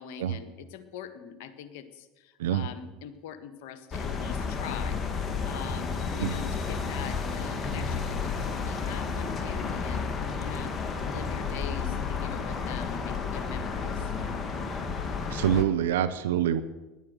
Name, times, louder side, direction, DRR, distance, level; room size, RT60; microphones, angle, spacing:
voice 1, 0.0-10.8 11.1-14.1, left 8 dB, 70° left, 10 dB, 1.5 m, -43 dB
sound 1, 3.9-15.6, left 5 dB, 30° left, 2.4 m, -32 dB
voice 2, 15.3-16.6, right 10 dB, 80° right, 13 dB, 0.7 m, -25 dB
17.0 x 11.0 x 6.9 m, 1.1 s
hypercardioid pair, 75°, 0 cm